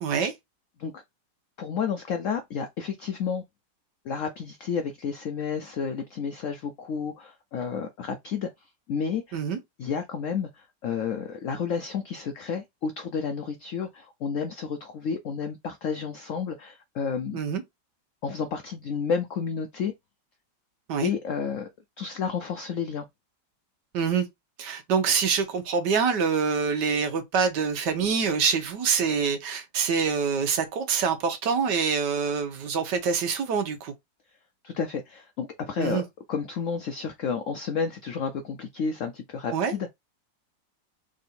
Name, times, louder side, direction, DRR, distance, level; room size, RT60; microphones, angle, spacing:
voice 1, 0.0-0.3 9.3-9.6 17.3-17.6 20.9-21.1 23.9-24.3 24.6-33.9 35.8-36.0 39.5-39.7, right 6 dB, 75° right, 1.5 m, -25 dB
voice 2, 1.6-3.4 4.0-8.5 8.9-9.4 9.8-17.4 18.2-19.9 21.0-21.7 22.0-23.1 34.6-36.0 36.3-39.9, left 6 dB, 75° left, 0.7 m, -31 dB
3.7 x 2.6 x 4.2 m
omnidirectional pair, 1.9 m